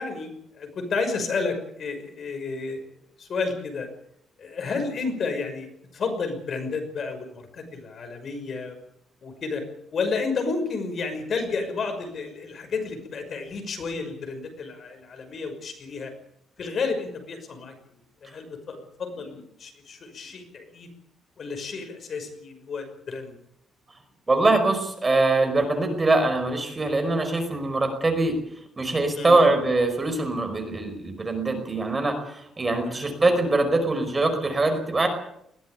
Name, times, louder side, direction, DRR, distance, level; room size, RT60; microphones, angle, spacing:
voice 1, 0.0-2.8 3.2-3.9 4.4-8.8 9.2-9.6 9.9-16.1 16.6-17.7 18.2-20.9 21.4-23.4 29.1-29.5 32.8-33.1, left 4 dB, 45° left, 6 dB, 5.8 m, -31 dB
voice 2, 24.3-28.4 28.8-35.1, right 2 dB, 20° right, 6 dB, 5.0 m, -23 dB
21.0 x 16.0 x 9.3 m, 0.74 s
cardioid pair, 160°, 0 cm